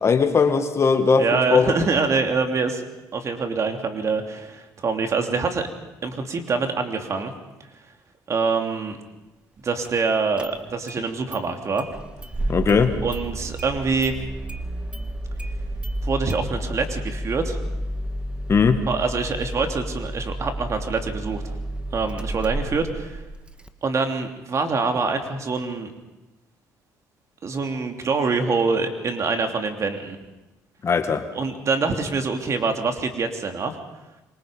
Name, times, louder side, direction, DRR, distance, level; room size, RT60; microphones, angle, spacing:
voice 1, 0.0-1.7 12.5-12.9 18.5-18.8 30.8-31.2, left 5 dB, 40° left, 8 dB, 2.1 m, -19 dB
voice 2, 1.2-2.8 3.1-5.7 6.0-7.3 8.3-9.0 9.6-11.9 13.0-14.2 16.0-17.6 18.9-21.6 21.9-23.2 23.8-25.9 27.4-30.2 31.3-33.8, right 4 dB, 45° right, 5 dB, 3.1 m, -25 dB
Engine starting, 9.8-9.9 10.4-11.0 11.3-11.4 11.8-23.7, right 1 dB, 15° right, 1.7 m, -31 dB
26.0 x 24.5 x 5.3 m, 1.0 s
supercardioid pair, 75°, 7 cm